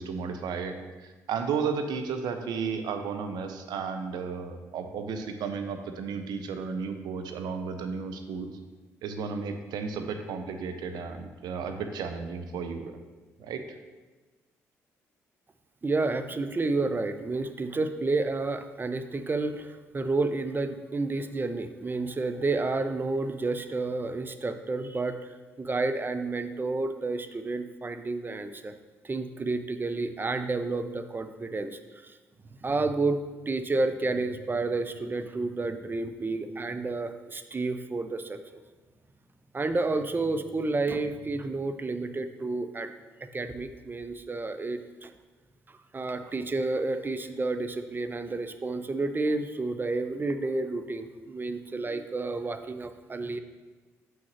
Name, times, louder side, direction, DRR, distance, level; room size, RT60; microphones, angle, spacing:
voice 1, 0.0-8.5 9.0-13.0 13.4-13.6, right 5 dB, 65° right, 7 dB, 0.6 m, -33 dB
voice 2, 15.8-28.7 29.0-32.2 32.6-33.2 33.5-38.6 39.5-42.9 43.2-45.1 45.7-53.4, right 3 dB, 25° right, 9 dB, 0.5 m, -30 dB
7.2 x 6.0 x 3.0 m, 1.2 s
hypercardioid pair, 45°, 8 cm